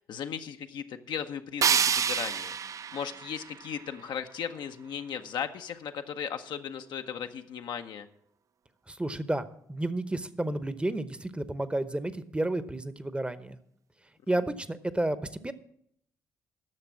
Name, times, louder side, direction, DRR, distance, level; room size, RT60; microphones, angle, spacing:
voice 1, 0.0-2.5 2.9-8.1, left 8 dB, 65° left, 7 dB, 0.7 m, -36 dB
sound 1, 1.6-4.6, right 7 dB, 40° right, 0.3 m, -29 dB
voice 2, 8.9-13.6 14.3-15.2 15.4-15.5, right 1 dB, 15° right, 14 dB, 0.9 m, -31 dB
11.0 x 6.7 x 7.3 m, 0.71 s
hypercardioid pair, 50°, 8 cm